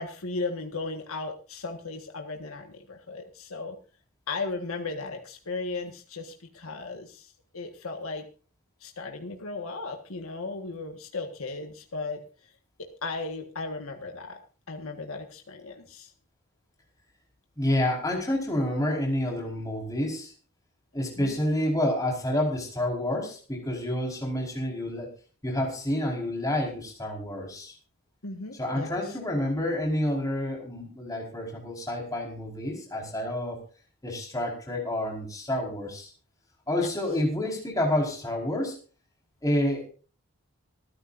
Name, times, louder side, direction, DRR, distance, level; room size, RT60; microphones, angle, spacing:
voice 1, 0.0-3.8 4.3-7.3 7.5-8.2 8.8-12.2 12.8-14.4 14.7-16.1 21.2-21.3 28.2-28.9 36.8-36.9, left 3 dB, 75° left, 4 dB, 1.6 m, -36 dB
voice 2, 17.6-20.3 20.9-25.1 25.4-27.7 28.5-33.6 34.0-36.1 36.7-38.8 39.4-39.9, left 1 dB, 15° left, -1 dB, 4.7 m, -29 dB
26.0 x 10.0 x 2.6 m, 0.37 s
head